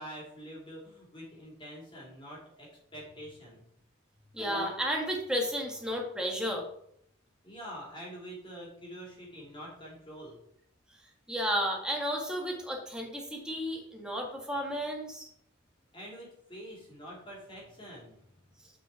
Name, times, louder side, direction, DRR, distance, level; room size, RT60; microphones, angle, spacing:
voice 1, 0.0-3.6 7.4-10.4 15.9-18.4, equal, 25° left, -3 dB, 3.3 m, -46 dB
voice 2, 4.3-6.6 11.3-15.3, equal, 5° right, 0 dB, 1.7 m, -32 dB
7.2 x 5.7 x 4.9 m, 0.70 s
head